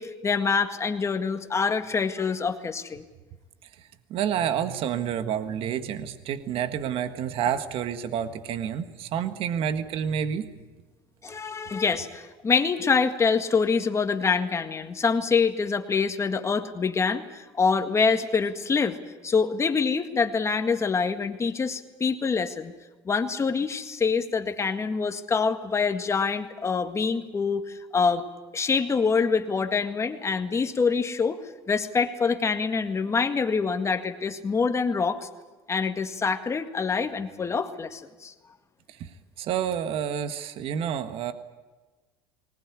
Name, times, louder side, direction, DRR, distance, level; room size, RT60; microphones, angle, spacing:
voice 1, 0.0-3.0 11.2-19.0 19.2-22.7 23.1-28.2 28.5-31.4 31.7-35.3 35.7-38.3, left 5 dB, 25° left, 7 dB, 1.9 m, -25 dB
voice 2, 3.8-10.5 38.9-39.1 39.4-41.3, right 8 dB, 55° right, 10 dB, 1.6 m, -29 dB
20.0 x 19.0 x 9.9 m, 1.2 s
supercardioid pair, 90°, 11 cm